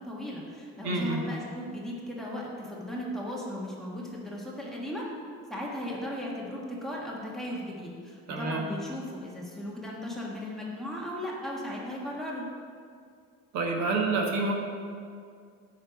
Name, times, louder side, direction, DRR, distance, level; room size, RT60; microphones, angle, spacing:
voice 1, 0.0-5.1 5.5-12.4, left 1 dB, ahead, -4 dB, 1.4 m, -36 dB
voice 2, 0.8-1.2 8.3-8.6 13.5-14.5, right 3 dB, 70° right, 1 dB, 1.5 m, -28 dB
8.8 x 5.7 x 6.9 m, 2.2 s
cardioid pair, 165°, 29 cm